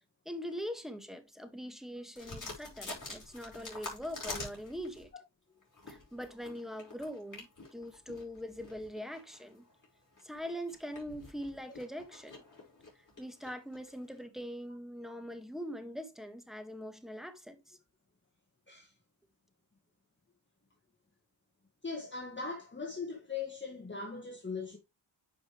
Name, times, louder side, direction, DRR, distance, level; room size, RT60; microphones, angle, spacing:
voice 1, 0.2-5.1 5.9-9.7 10.2-12.4 13.2-17.8, equal, ahead, 1.7 m, -42 dB
sound 1, 2.2-5.1 5.6-14.2, left 2 dB, 40° left, 5.2 m, -47 dB
voice 2, 21.8-24.8, left 4 dB, 25° left, 1.8 m, -40 dB
9.0 x 5.4 x 3.2 m
cardioid pair, 60°, 46 cm